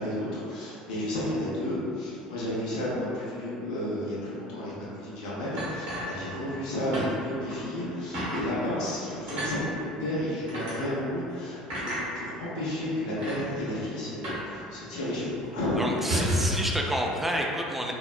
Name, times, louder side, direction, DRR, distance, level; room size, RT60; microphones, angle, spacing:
voice 1, 0.0-16.4 16.7-16.8, left 1 dB, 65° left, -8 dB, 0.6 m, -32 dB
sound 1, 5.6-6.6 6.9-7.1 7.5-7.6 8.1-8.4 9.3-9.5 10.5-10.7 11.7-12.0 12.8-12.9 13.2-13.4 14.2-14.5 14.7-14.8 15.2-15.4 15.9-16.7, equal, 65° right, 1.2 m, -30 dB
voice 2, 15.8-17.9, equal, 5° right, -1 dB, 0.3 m, -29 dB
3.6 x 2.0 x 2.3 m, 2.6 s
figure-of-eight pair, 65°, 4 cm